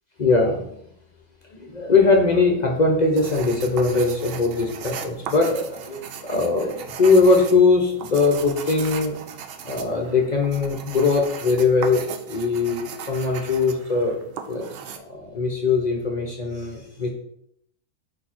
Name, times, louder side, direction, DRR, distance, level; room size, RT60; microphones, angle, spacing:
voice 1, 0.2-0.7 1.5-9.2 9.6-14.2 14.5-14.6 15.0-17.1, left 3 dB, 40° left, 1 dB, 0.6 m, -21 dB
sound 1, 3.2-15.0, right 7 dB, 90° right, 0.5 m, -37 dB
4.8 x 4.7 x 4.3 m, 0.72 s
omnidirectional pair, 1.6 m